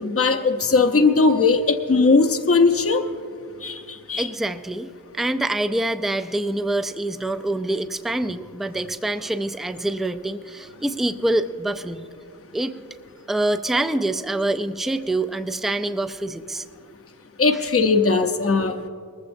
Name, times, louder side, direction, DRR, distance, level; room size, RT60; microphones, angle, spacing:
voice 1, 0.0-3.0 3.6-4.3 17.4-18.9, left 4 dB, 40° left, 5 dB, 0.7 m, -19 dB
voice 2, 4.2-12.1 12.5-12.8 13.3-16.6, right 1 dB, ahead, 9 dB, 0.5 m, -25 dB
20.5 x 15.0 x 2.6 m, 2.2 s
wide cardioid pair, 55°, 35 cm